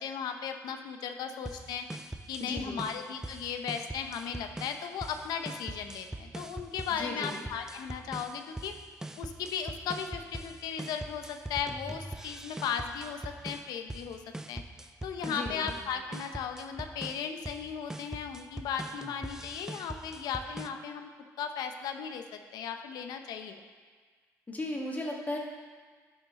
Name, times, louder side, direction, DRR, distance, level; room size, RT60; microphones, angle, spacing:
voice 1, 0.0-1.9 2.3-8.7 9.2-14.2 14.5-14.6 15.0-21.1 21.4-23.6, left 7 dB, 80° left, 6 dB, 0.7 m, -36 dB
sound 1, 1.5-20.7, right 1 dB, 10° right, 0.4 m, -42 dB
voice 2, 2.4-2.8 6.9-7.4 15.3-15.7 24.5-25.4, left 2 dB, 25° left, -1 dB, 1.7 m, -36 dB
11.0 x 6.1 x 3.7 m, 1.5 s
cardioid pair, 85°, 7 cm